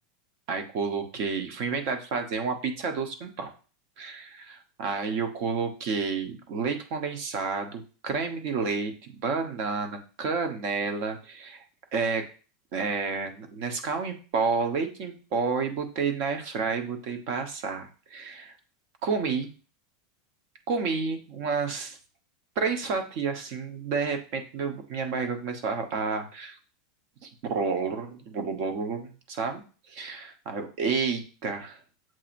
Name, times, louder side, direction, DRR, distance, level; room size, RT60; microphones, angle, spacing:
voice 1, 0.5-3.5 4.0-11.6 11.9-12.3 12.7-18.5 19.0-19.5 20.7-22.0 22.6-26.6 27.2-29.6 29.9-31.8, right 5 dB, 55° right, 6 dB, 0.9 m, -30 dB
7.4 x 2.8 x 2.6 m, 0.36 s
supercardioid pair, 135°, 0 cm